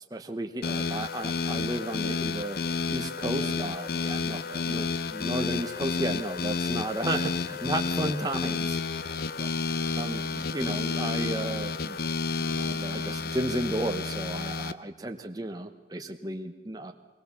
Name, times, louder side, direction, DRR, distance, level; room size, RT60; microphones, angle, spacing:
voice 1, 0.0-2.6 2.9-9.5 10.0-12.0 12.4-16.9, right 1 dB, 20° right, 5 dB, 0.9 m, -34 dB
sound 1, 0.6-14.7, left 4 dB, 55° left, 0.6 m, -30 dB
22.0 x 19.0 x 7.0 m, 1.2 s
head